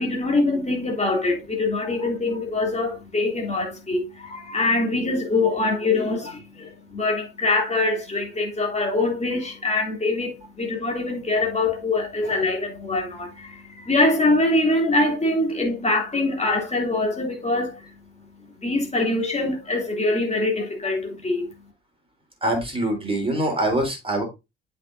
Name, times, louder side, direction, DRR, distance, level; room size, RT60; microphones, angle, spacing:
voice 1, 0.0-17.9 18.6-21.5, left 2 dB, 20° left, 3.1 m, -24 dB
voice 2, 22.4-24.2, right 1 dB, 15° right, 3.8 m, -24 dB
8.1 x 5.8 x 2.7 m
figure-of-eight pair, 50°, 35 cm